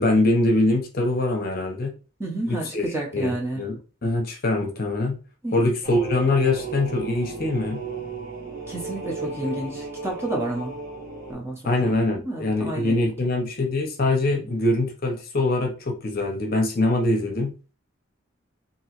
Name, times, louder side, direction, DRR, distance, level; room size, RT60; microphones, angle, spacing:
voice 1, 0.0-1.9 2.5-2.8 3.1-3.8 4.0-5.2 5.5-7.8 11.6-17.5, left 2 dB, 45° left, 0.7 m, -23 dB
voice 2, 2.2-3.6 5.4-5.7 8.7-10.8 11.3-12.0 12.2-13.3 14.3-14.5, right 2 dB, 10° right, 0.7 m, -31 dB
sound 1, 5.8-11.3, right 3 dB, 40° right, 1.1 m, -35 dB
3.0 x 2.7 x 2.9 m
head